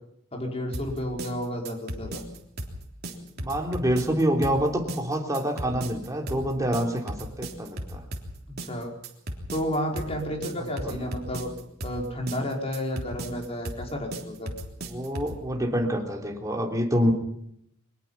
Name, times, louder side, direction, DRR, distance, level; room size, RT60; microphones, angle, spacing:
voice 1, 0.3-2.2 8.6-8.9 9.5-11.5 11.8-14.5, equal, 30° left, 1 dB, 5.2 m, -31 dB
sound 1, 0.7-15.4, right 1 dB, 50° right, 3.5 m, -36 dB
voice 2, 3.4-8.0 10.8-10.9 14.9-17.1, equal, 15° right, 1 dB, 3.3 m, -26 dB
24.0 x 20.5 x 5.8 m, 0.73 s
head